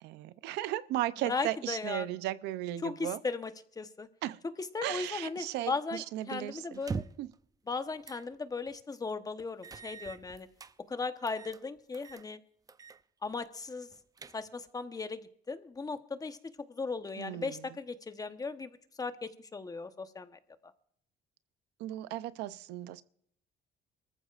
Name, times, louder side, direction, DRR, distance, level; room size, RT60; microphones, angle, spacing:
voice 1, 0.0-3.2 4.2-4.4 4.8-6.8 7.2-7.3 17.2-17.7 21.8-23.0, right 14 dB, 90° right, 0.6 m, -36 dB
voice 2, 1.3-2.1 2.8-3.5 3.8-4.1 4.7-6.0 6.3-7.0 7.7-10.5 10.9-12.4 13.2-13.9 14.3-15.2 15.5-16.4 16.7-20.4, left 4 dB, 20° left, 1.0 m, -37 dB
sound 1, 6.7-7.3 8.0-8.3 8.7-8.8 9.6-10.7 11.3-11.6 11.9-12.3 12.7-13.0 13.3-13.4 13.9-14.7, right 5 dB, 20° right, 0.5 m, -42 dB
24.0 x 14.5 x 2.5 m
cardioid pair, 110°, 17 cm